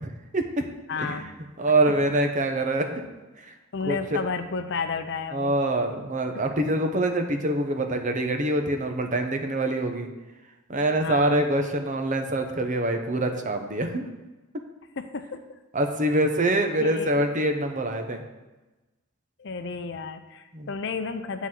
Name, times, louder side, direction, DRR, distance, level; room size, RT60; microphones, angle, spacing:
voice 1, 0.0-0.6 1.0-1.2 1.6-3.1 3.4-3.5 3.8-4.2 5.3-10.1 10.7-14.1 15.7-18.2 20.5-20.7, right 1 dB, 35° right, 5 dB, 0.9 m, -25 dB
voice 2, 0.9-1.3 3.7-5.5 10.9-11.5 15.0-15.4 16.8-17.2 19.4-21.5, left 4 dB, 55° left, 8 dB, 0.6 m, -32 dB
9.9 x 4.1 x 7.4 m, 1.1 s
head